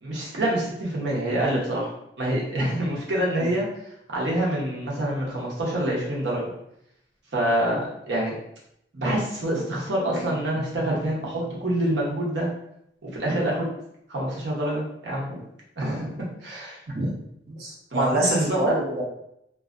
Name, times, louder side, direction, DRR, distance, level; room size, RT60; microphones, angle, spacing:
voice 1, 0.0-1.9 2.2-3.7 4.1-6.5 7.3-8.3 8.9-12.5 13.0-13.7 14.1-15.4 15.8-16.8 17.9-18.8, right 1 dB, 85° right, -4 dB, 0.9 m, -26 dB
voice 2, 10.8-11.1 16.9-17.1 17.5-19.0, right 1 dB, 55° right, -4 dB, 0.6 m, -27 dB
2.7 x 2.3 x 2.4 m, 0.78 s
head